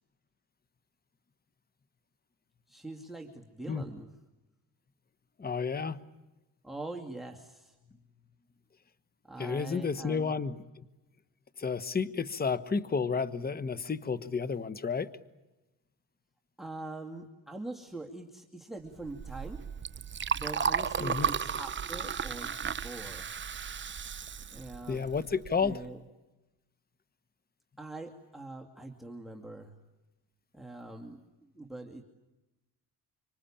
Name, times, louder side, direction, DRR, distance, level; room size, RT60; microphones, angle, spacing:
voice 1, 2.7-4.1 6.6-7.7 9.2-10.4 16.6-19.6 20.3-23.3 24.5-25.1 25.6-26.0 27.8-29.8 30.5-32.0, right 2 dB, ahead, 6 dB, 2.4 m, -43 dB
voice 2, 5.4-6.0 9.4-10.8 11.6-15.1 21.0-21.3 24.9-25.8, left 5 dB, 25° left, 15 dB, 1.3 m, -31 dB
Liquid, 19.0-25.7, right 7 dB, 30° right, 0.9 m, -34 dB
26.0 x 26.0 x 8.8 m, 1.0 s
cardioid pair, 90°, 38 cm